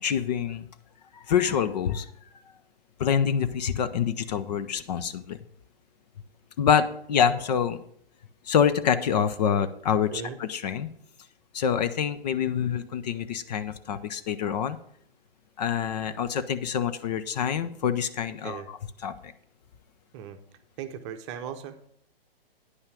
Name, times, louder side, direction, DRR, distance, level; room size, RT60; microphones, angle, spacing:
voice 1, 0.0-0.7 1.1-2.1 3.0-5.4 6.6-7.8 8.4-10.9 11.5-14.8 15.6-19.3, left 8 dB, 45° left, 12 dB, 0.7 m, -26 dB
voice 2, 20.8-21.7, right 8 dB, 30° right, 8 dB, 0.8 m, -37 dB
9.7 x 5.6 x 6.8 m, 0.67 s
figure-of-eight pair, 125°, 30 cm